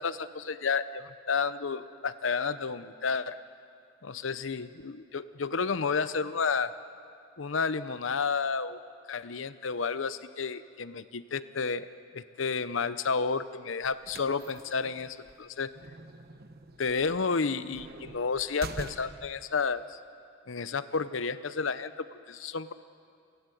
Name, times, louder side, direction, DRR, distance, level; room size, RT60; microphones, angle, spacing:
voice 1, 0.0-3.4 4.0-6.7 7.4-8.8 9.1-11.9 12.1-15.7 16.8-20.0 20.5-22.7, left 5 dB, 80° left, 14 dB, 0.7 m, -31 dB
sound 1, 13.8-19.4, right 2 dB, 55° right, 1.2 m, -45 dB
28.5 x 11.5 x 9.1 m, 2.4 s
head